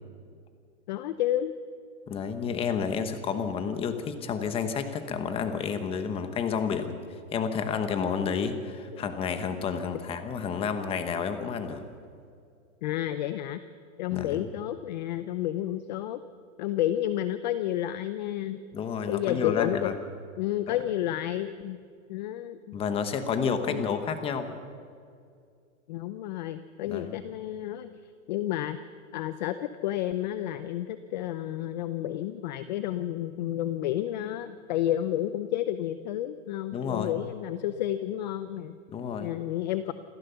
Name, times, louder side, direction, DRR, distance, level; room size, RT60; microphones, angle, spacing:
voice 1, 0.9-1.5 8.9-9.0 12.8-13.6 14.0-16.2 16.6-18.6 19.1-19.9 20.4-21.8 22.1-22.8 23.7-23.9 25.9-28.0 28.3-28.8 29.1-38.7 39.2-39.9, left 12 dB, 35° left, 12 dB, 0.6 m, -31 dB
voice 2, 2.1-7.0 7.3-11.8 14.1-14.5 18.7-19.9 20.7-20.8 22.7-24.5 26.9-27.1 36.7-37.1 38.9-39.3, left 6 dB, 15° left, 9 dB, 1.1 m, -30 dB
27.5 x 14.0 x 6.9 m, 2.3 s
supercardioid pair, 165°, 40 cm